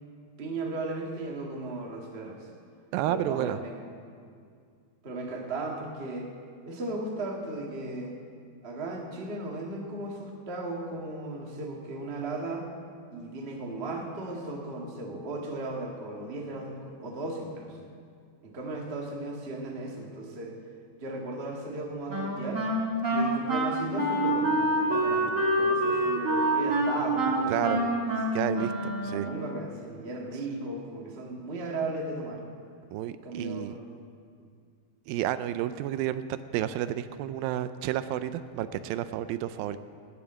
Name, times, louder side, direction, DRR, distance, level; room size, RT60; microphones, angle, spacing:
voice 1, 0.4-2.5 3.1-3.8 4.2-4.3 5.0-6.3 6.6-8.1 8.6-12.7 13.1-17.8 18.4-20.6 21.0-22.7 23.0-28.0 28.3-28.4 29.0-32.4 33.2-33.9 34.4-34.5, right 2 dB, 55° right, 0 dB, 0.6 m, -36 dB
voice 2, 2.9-3.6 27.5-27.8 28.3-29.3 32.9-33.8 35.1-39.8, right 12 dB, 80° right, 12 dB, 2.2 m, -31 dB
Wind instrument woodwind instrument, 22.1-29.5, right 1 dB, 40° right, 1.1 m, -27 dB
19.0 x 7.1 x 8.6 m, 2.2 s
omnidirectional pair, 4.3 m